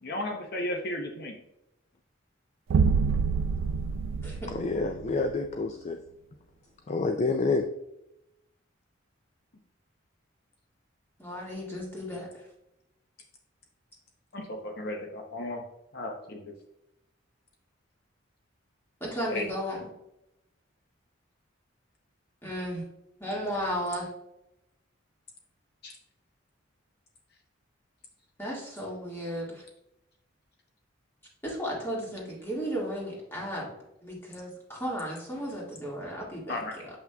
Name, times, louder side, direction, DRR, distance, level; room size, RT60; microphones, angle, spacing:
voice 1, 0.0-1.4 14.3-15.6 15.9-16.5 19.3-19.5 25.8-25.9 36.5-36.7, left 1 dB, 50° left, 0.7 m, -34 dB
sound 1, 2.7-5.3, right 5 dB, 75° right, 0.3 m, -26 dB
voice 2, 4.5-6.0 6.9-7.7, left 3 dB, 35° left, 0.3 m, -28 dB
voice 3, 11.2-12.4 19.0-19.8 22.4-22.8 23.2-24.1 28.4-29.6 31.4-33.7 34.0-36.9, equal, 10° left, 1.9 m, -34 dB
7.2 x 5.7 x 2.3 m
head